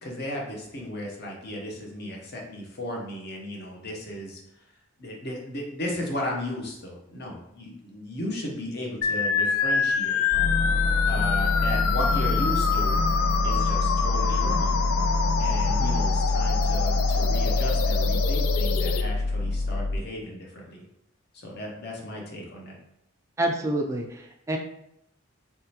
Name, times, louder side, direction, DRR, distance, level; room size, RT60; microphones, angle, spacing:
voice 1, 0.0-4.4 5.0-10.2 11.1-13.0 13.4-14.8 15.4-20.8 21.3-22.8, left 1 dB, 50° left, -1 dB, 0.8 m, -35 dB
sound 1, 9.0-19.0, left 6 dB, 90° left, 0.3 m, -27 dB
sound 2, 10.3-20.0, left 2 dB, 80° right, 0.7 m, -25 dB
voice 2, 15.7-16.0 23.4-24.6, right 1 dB, 15° right, 2 dB, 0.3 m, -28 dB
3.6 x 3.1 x 2.8 m, 0.79 s
head